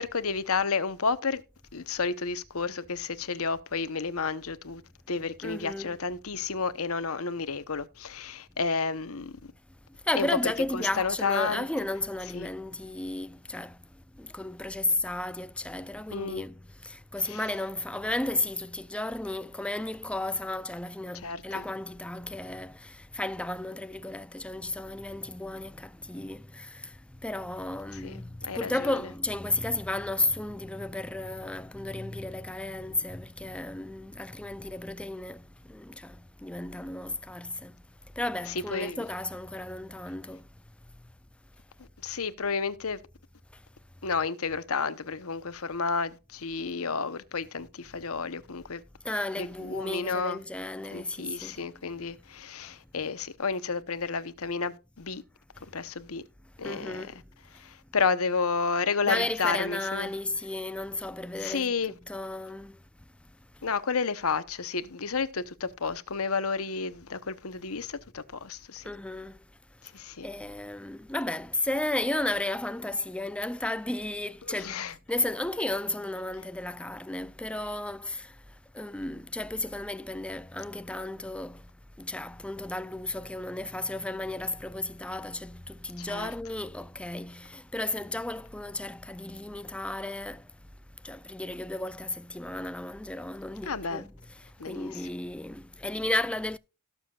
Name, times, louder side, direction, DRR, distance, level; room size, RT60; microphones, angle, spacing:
voice 1, 0.0-1.4 1.7-4.8 5.1-9.3 10.1-10.3 10.7-11.7 12.3-12.5 16.1-16.4 17.3-17.4 21.2-21.6 27.9-28.1 28.4-28.9 38.7-39.0 42.0-43.0 44.0-48.8 49.4-50.4 50.9-55.2 55.7-56.2 56.6-57.0 57.6-60.1 61.4-61.9 63.6-68.8 69.9-70.3 74.5-74.9 86.0-86.3 93.6-94.0 94.6-95.1, left 5 dB, 70° left, 1.0 m, -31 dB
voice 2, 5.4-6.0 10.1-13.8 14.1-37.8 38.2-40.5 49.0-51.7 56.6-57.2 59.0-62.8 68.8-69.4 70.2-74.8 75.1-78.4 78.7-81.7 82.0-90.5 91.0-96.6, left 2 dB, 5° left, 0.4 m, -34 dB
18.0 x 7.1 x 2.4 m
head